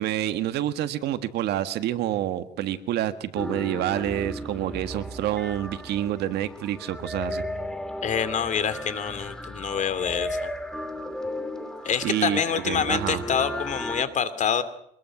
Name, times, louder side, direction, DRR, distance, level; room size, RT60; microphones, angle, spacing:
voice 1, 0.0-7.4 12.0-13.2, right 12 dB, 80° right, 11 dB, 1.6 m, -28 dB
sound 1, 3.4-14.0, equal, 5° left, 2.7 m, -35 dB
voice 2, 8.0-10.5 11.8-14.6, left 7 dB, 45° left, 12 dB, 2.6 m, -26 dB
25.0 x 21.0 x 6.1 m, 0.71 s
cardioid pair, 110°, 17 cm